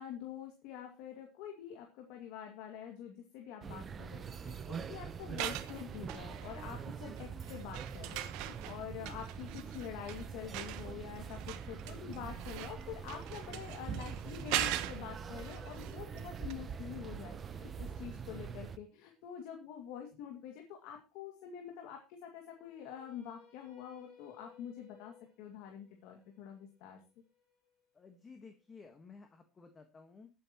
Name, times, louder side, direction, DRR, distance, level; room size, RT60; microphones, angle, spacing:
voice 1, 0.0-27.0, left 9 dB, 75° left, 2 dB, 2.3 m, -46 dB
sound 1, 3.6-18.8, right 6 dB, 30° right, 0.9 m, -44 dB
sound 2, 5.2-6.8 7.2-16.2 16.5-16.6, right 14 dB, 70° right, 1.2 m, -41 dB
sound 3, 13.1-19.3 22.5-28.6, left 5 dB, 55° left, 3.8 m, -63 dB
voice 2, 18.1-18.5 27.9-30.3, left 4 dB, 20° left, 6 dB, 1.5 m, -55 dB
21.0 x 8.8 x 3.0 m, 0.30 s
cardioid pair, 130°, 0 cm